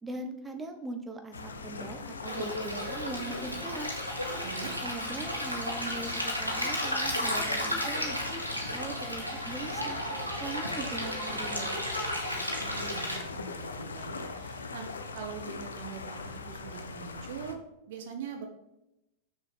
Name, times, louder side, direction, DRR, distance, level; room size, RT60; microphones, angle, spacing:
voice 1, 0.0-3.9 4.8-8.2 8.5-10.0 10.4-11.8, right 2 dB, 15° right, 5 dB, 1.3 m, -40 dB
sound 1, 1.3-17.5, left 4 dB, 70° left, 0.8 m, -42 dB
Stream, 2.3-13.2, left 1 dB, 90° left, 1.7 m, -33 dB
voice 2, 4.4-4.8 12.6-14.9 15.1-17.6 17.9-18.5, right 7 dB, 55° right, 4 dB, 1.3 m, -42 dB
6.6 x 6.3 x 5.5 m, 0.90 s
figure-of-eight pair, 90°, 0 cm